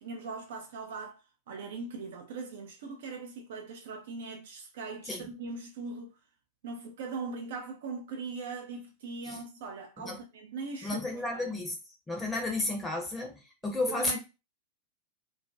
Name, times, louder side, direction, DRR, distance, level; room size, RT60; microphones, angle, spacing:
voice 1, 0.0-1.2 1.5-6.1 6.6-11.6 13.9-14.2, right 4 dB, 55° right, 0.4 m, -40 dB
voice 2, 10.8-11.8 12.1-14.2, left 2 dB, 10° left, 0.6 m, -32 dB
2.3 x 2.1 x 2.5 m
figure-of-eight pair, 90°, 0 cm